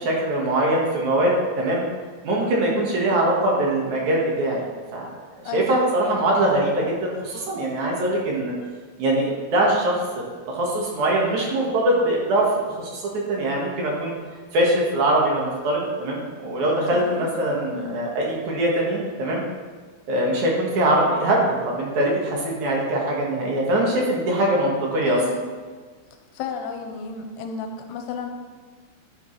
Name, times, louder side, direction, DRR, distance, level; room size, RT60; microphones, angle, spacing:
voice 1, 0.0-1.8 2.2-4.6 4.9-5.1 5.4-8.5 9.0-10.0 10.5-13.0 13.3-14.1 14.5-19.4 20.1-25.2, right 1 dB, 55° right, -2 dB, 2.2 m, -22 dB
voice 2, 5.4-5.8 16.9-17.3 17.7-18.0 25.0-25.4 26.3-28.3, left 6 dB, 85° left, 4 dB, 3.2 m, -33 dB
12.5 x 9.2 x 3.3 m, 1.5 s
omnidirectional pair, 5.5 m